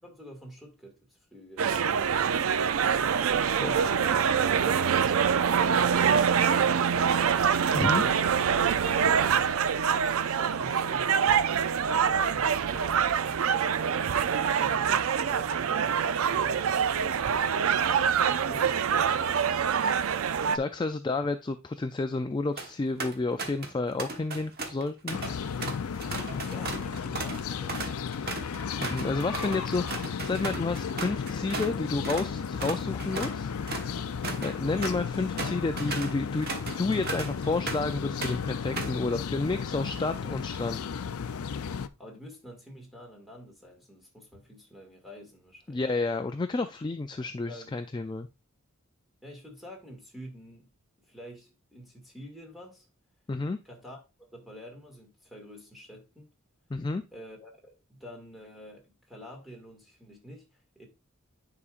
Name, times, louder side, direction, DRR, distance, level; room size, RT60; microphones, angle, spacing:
voice 1, 0.0-2.9 8.8-11.4 11.8-15.6 18.4-19.8 26.4-27.9 34.2-34.5 41.6-45.8 47.5-47.7 49.2-50.7 51.1-52.9 53.6-56.3 57.1-60.5 60.8-60.9, equal, ahead, 2.0 m, -48 dB
sound 1, 1.6-20.6, right 7 dB, 70° right, 0.4 m, -25 dB
voice 2, 3.5-3.8 7.7-8.0 20.5-25.2 28.8-33.5 34.4-36.5 36.8-40.8 45.7-48.3 53.3-53.6 56.7-57.0, left 3 dB, 20° left, 0.3 m, -30 dB
sound 2, 22.3-22.7 23.0-23.7 24.0-31.8 32.0-32.3 32.6-37.9 38.2-39.0, right 3 dB, 45° right, 1.3 m, -37 dB
sound 3, 25.1-41.9, left 6 dB, 80° left, 0.5 m, -34 dB
9.7 x 4.9 x 2.4 m
head